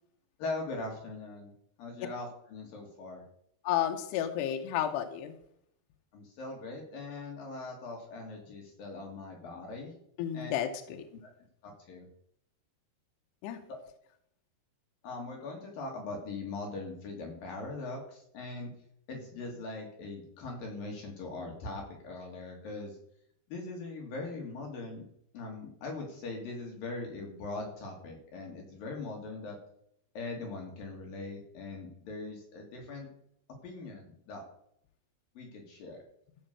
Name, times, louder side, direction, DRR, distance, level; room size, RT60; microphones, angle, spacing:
voice 1, 0.4-1.5 1.8-3.2 6.1-9.9 10.3-10.5 11.6-12.1 15.0-18.7 19.1-23.0 23.5-25.1 25.3-29.6 30.1-33.1 33.6-34.4 35.3-36.0, left 3 dB, 60° left, 0 dB, 3.4 m, -41 dB
voice 2, 3.6-5.4 10.2-11.0 13.4-13.6, left 10 dB, 75° left, 5 dB, 2.9 m, -32 dB
15.5 x 5.2 x 6.6 m, 0.71 s
omnidirectional pair, 5.0 m